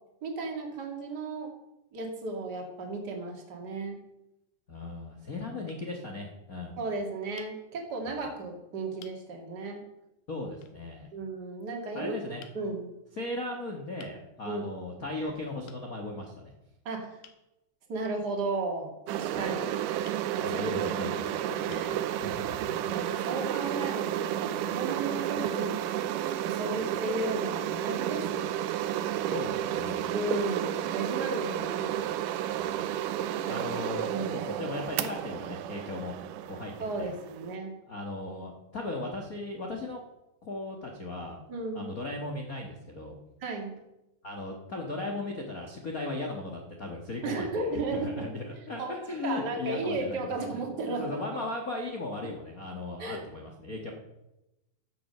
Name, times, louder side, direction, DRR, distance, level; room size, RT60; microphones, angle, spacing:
voice 1, 0.2-1.5 1.9-4.0 6.8-9.8 11.1-12.2 12.5-12.9 14.5-14.7 16.8-17.2 17.9-19.8 20.5-20.7 21.0-21.9 22.9-25.8 26.4-28.5 30.1-31.9 33.3-33.7 34.1-34.5 36.8-37.8 41.5-41.9 43.4-43.8 47.2-48.3 48.8-49.0 49.2-51.1 53.0-53.2, right 2 dB, 35° right, 2 dB, 2.4 m, -34 dB
sound 1, 4.2-4.5 5.2-5.4 5.7-5.9 7.4-7.6 8.4-8.5 9.0-9.2 10.6-10.8 12.4-12.6 14.0-14.2 15.7-15.9 17.2-17.4 20.0-20.2 21.1-21.2 21.7-22.0, left 10 dB, 85° left, 2.7 m, -54 dB
voice 2, 4.7-6.7 8.1-8.2 10.3-11.1 11.9-12.4 13.2-16.5 19.3-19.5 20.4-21.4 21.7-22.9 29.3-30.0 32.6-32.8 33.5-36.1 36.5-36.7 37.0-37.1 37.9-40.0 40.4-41.4 41.7-43.2 44.2-53.9, left 2 dB, 50° left, 1 dB, 1.0 m, -37 dB
sound 2, 19.1-37.5, right 11 dB, 80° right, 2.1 m, -32 dB
13.5 x 7.8 x 6.6 m, 0.93 s
omnidirectional pair, 3.9 m